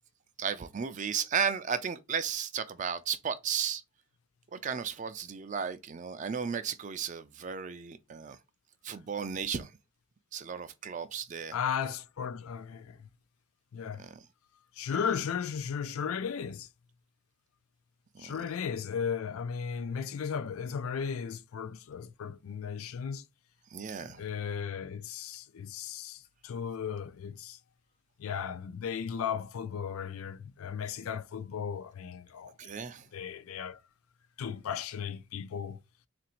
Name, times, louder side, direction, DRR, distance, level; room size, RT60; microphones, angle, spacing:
voice 1, 0.4-3.8 4.5-8.4 8.8-9.7 10.3-11.6 14.0-14.1 18.1-18.3 23.7-24.2 32.6-33.0, right 7 dB, 35° right, 0.4 m, -34 dB
voice 2, 11.5-13.0 13.7-14.0 14.8-16.7 18.2-23.2 24.0-27.6 28.2-32.8 33.1-33.8 34.4-35.8, left 7 dB, 85° left, 0.4 m, -36 dB
3.8 x 2.5 x 4.2 m
head